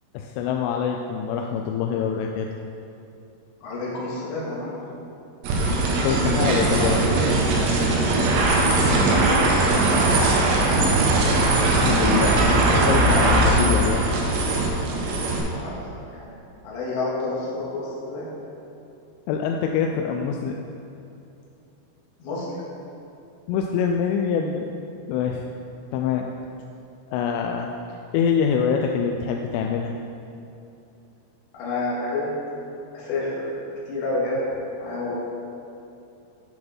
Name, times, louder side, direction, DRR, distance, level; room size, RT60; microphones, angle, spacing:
voice 1, 0.1-2.5 6.0-7.0 11.7-14.1 19.3-20.6 23.5-24.7 25.1-25.4 25.9-26.3 27.1-29.9, left 7 dB, 85° left, 2 dB, 2.9 m, -25 dB
voice 2, 3.6-5.1 8.9-10.1 10.7-10.9 15.5-15.8 16.1-16.4 16.6-18.3 22.2-22.6 31.5-32.4 32.9-33.5 33.9-34.5 34.8-35.1, left 2 dB, 65° left, -6 dB, 3.7 m, -29 dB
sound 1, 5.4-15.4, right 2 dB, 85° right, 3.8 m, -20 dB
10.5 x 6.5 x 4.3 m, 2.8 s
omnidirectional pair, 5.9 m